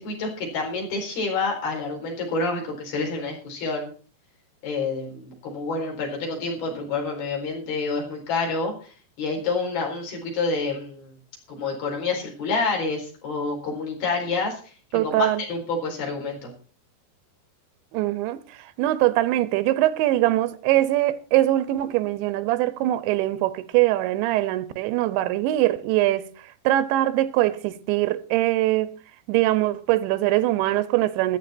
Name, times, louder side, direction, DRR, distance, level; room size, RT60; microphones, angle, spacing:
voice 1, 0.0-3.9 4.6-11.1 11.5-14.7 15.0-16.5, left 3 dB, 55° left, 6.1 m, -28 dB
voice 2, 14.9-15.4 17.9-26.3 26.7-28.9 29.3-31.4, right 15 dB, 85° right, 3.1 m, -22 dB
14.5 x 12.0 x 4.4 m
omnidirectional pair, 5.2 m